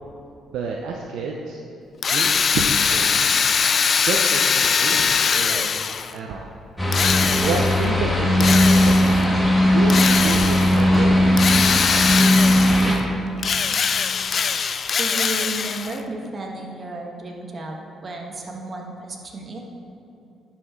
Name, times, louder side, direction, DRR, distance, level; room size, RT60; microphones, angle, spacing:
voice 1, 0.5-1.6 2.0-3.3 4.0-5.7 6.1-6.5 7.4-9.2 9.7-11.7, right 4 dB, 80° right, 0 dB, 0.7 m, -29 dB
Drill, 2.0-6.2 6.9-7.9 8.4-9.3 9.9-10.8 11.4-13.0 13.4-16.0, left 6 dB, 50° left, 0.4 m, -22 dB
sound 1, 6.8-12.9, left 1 dB, 10° left, 2.1 m, -18 dB
voice 2, 15.0-19.6, right 2 dB, 40° right, 1 dB, 1.5 m, -33 dB
10.5 x 5.8 x 4.6 m, 2.8 s
cardioid pair, 75°, 0 cm